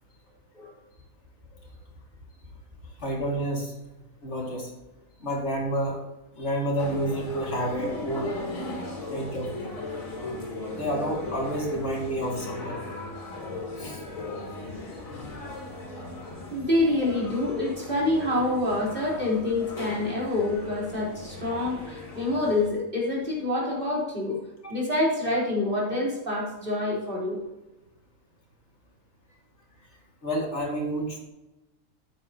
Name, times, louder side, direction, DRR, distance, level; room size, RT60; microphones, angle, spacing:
voice 1, 3.0-3.7 4.2-4.7 5.2-6.0 6.4-8.3 9.1-9.7 10.8-12.7 13.8-14.0 24.6-24.7 30.2-31.2, right 1 dB, 55° left, -2 dB, 2.7 m, -29 dB
sound 1, 6.8-22.7, left 2 dB, 70° left, 3.3 m, -37 dB
voice 2, 16.5-24.4 24.7-27.4, left 2 dB, 40° right, -5 dB, 4.2 m, -27 dB
13.0 x 9.0 x 2.9 m, 1.0 s
omnidirectional pair, 1.4 m